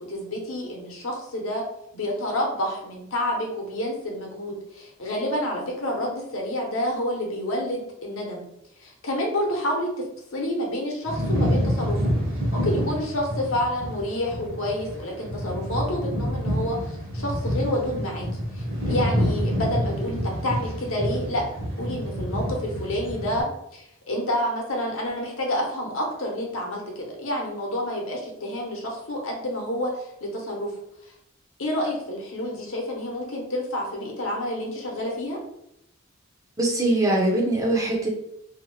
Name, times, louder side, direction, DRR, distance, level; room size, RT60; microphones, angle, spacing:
voice 1, 0.1-1.6 1.9-8.5 8.8-9.9 10.3-12.0 12.5-18.3 18.5-21.4 21.8-23.5 23.7-30.7 31.6-35.4, left 1 dB, 80° left, -1 dB, 0.8 m, -29 dB
sound 1, 11.1-23.4, equal, 45° right, 0.9 m, -27 dB
voice 2, 36.6-38.1, right 2 dB, 15° right, -2 dB, 0.5 m, -22 dB
2.6 x 2.1 x 3.0 m, 0.78 s
head